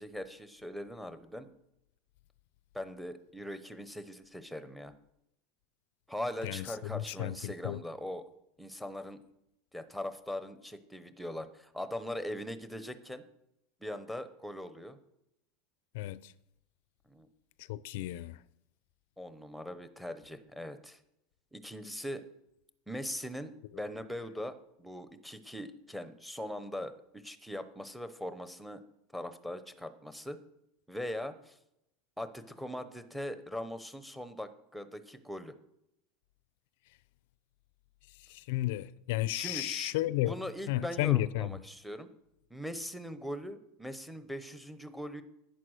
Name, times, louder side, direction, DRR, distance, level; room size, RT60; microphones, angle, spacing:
voice 1, 0.0-1.5 2.7-4.9 6.1-8.3 8.6-9.2 9.7-13.2 13.8-15.0 17.1-17.3 19.2-21.0 21.5-22.2 22.9-28.8 29.1-30.4 30.9-31.6 32.2-35.6 39.3-42.1 42.5-45.2, left 1 dB, ahead, 0.8 m, -41 dB
voice 2, 6.9-7.8 15.9-16.3 17.7-18.4 38.3-40.3 40.7-41.5, left 16 dB, 65° left, 0.4 m, -32 dB
11.0 x 9.3 x 6.3 m
supercardioid pair, 165°, 0 cm